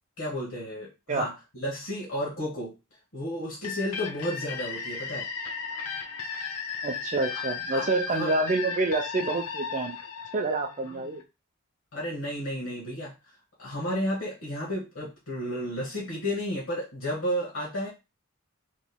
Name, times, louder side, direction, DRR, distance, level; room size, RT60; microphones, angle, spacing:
voice 1, 0.2-2.7 3.1-5.3 7.3-7.4 7.7-8.3 10.8-11.0 11.9-13.1 13.6-17.9, equal, 65° left, -5 dB, 1.2 m, -32 dB
sound 1, 3.6-11.2, left 5 dB, 85° left, 0.7 m, -35 dB
voice 2, 6.8-10.0 10.3-11.2, right 3 dB, 35° right, 4 dB, 0.4 m, -28 dB
3.4 x 3.0 x 2.2 m, 0.27 s
head